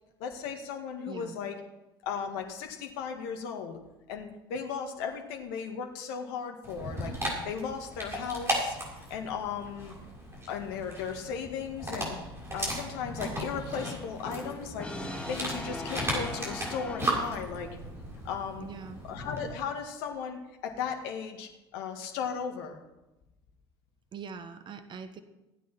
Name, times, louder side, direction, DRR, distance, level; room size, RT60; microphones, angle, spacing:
voice 1, 0.2-1.6 2.0-3.8 4.1-7.1 7.5-8.8 9.1-9.9 10.5-12.2 12.5-14.9 15.3-17.7 18.2-18.6 19.1-22.8, left 6 dB, 65° left, 3 dB, 1.9 m, -36 dB
voice 2, 1.1-1.4 18.6-19.0 24.1-25.2, right 5 dB, 40° right, 9 dB, 1.4 m, -42 dB
Dog, 6.6-19.5, right 1 dB, 20° right, 6.7 m, -36 dB
Brass instrument, 13.7-17.5, left 2 dB, 10° left, 2.0 m, -40 dB
16.0 x 9.4 x 6.0 m, 0.98 s
hypercardioid pair, 65°, 13 cm